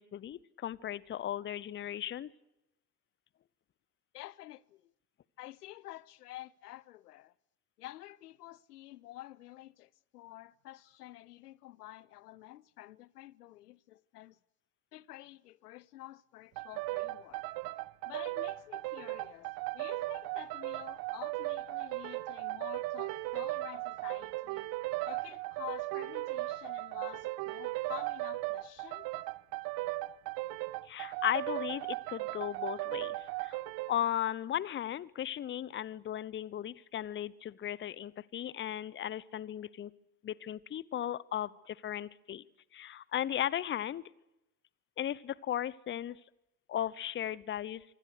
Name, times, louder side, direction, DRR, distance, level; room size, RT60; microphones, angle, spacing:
voice 1, 0.0-2.3 30.9-33.6 33.9-39.9 40.2-42.4 42.7-44.0 45.0-46.2 46.7-47.8, left 11 dB, 25° left, 0.8 m, -36 dB
voice 2, 4.1-4.9 5.4-7.3 7.8-14.4 14.9-17.4 18.1-24.7 25.0-29.1, left 15 dB, 70° left, 0.8 m, -49 dB
sound 1, 16.6-34.0, right 19 dB, 45° right, 0.9 m, -37 dB
25.5 x 24.0 x 6.6 m
figure-of-eight pair, 70°, 48 cm